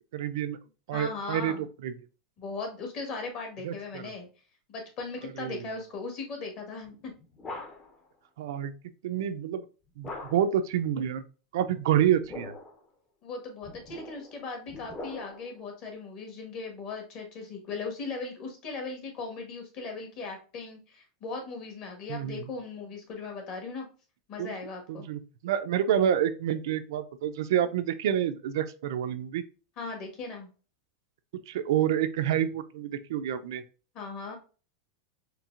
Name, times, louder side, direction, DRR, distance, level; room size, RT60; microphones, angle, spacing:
voice 1, 0.1-0.6 0.9-1.9 3.6-4.1 5.2-5.7 8.4-8.7 9.0-9.7 10.0-11.2 11.5-12.5 22.1-22.5 24.4-24.5 24.9-29.4 31.5-33.6, right 10 dB, 75° right, 9 dB, 0.4 m, -28 dB
voice 2, 0.9-1.6 2.4-4.3 4.7-7.1 13.2-23.9 24.3-25.1 29.8-30.5 33.9-34.4, left 4 dB, 40° left, 2 dB, 1.4 m, -38 dB
sound 1, 6.9-8.1 10.0-10.7 12.0-12.8 13.6-15.6, left 2 dB, 20° left, 0.7 m, -42 dB
4.5 x 3.2 x 2.4 m, 0.35 s
supercardioid pair, 160°, 2 cm